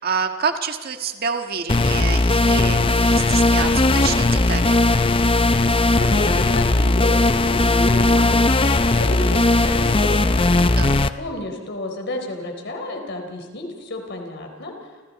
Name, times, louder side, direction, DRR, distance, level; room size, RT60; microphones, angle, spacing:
voice 1, 0.0-4.8 10.6-11.0, right 5 dB, 50° right, 5 dB, 1.6 m, -27 dB
sound 1, 1.7-11.1, left 2 dB, 25° left, 0.7 m, -18 dB
voice 2, 6.0-8.5 8.8-10.5 11.2-14.7, left 1 dB, 60° left, 3 dB, 4.0 m, -31 dB
29.5 x 27.5 x 4.2 m, 1.4 s
head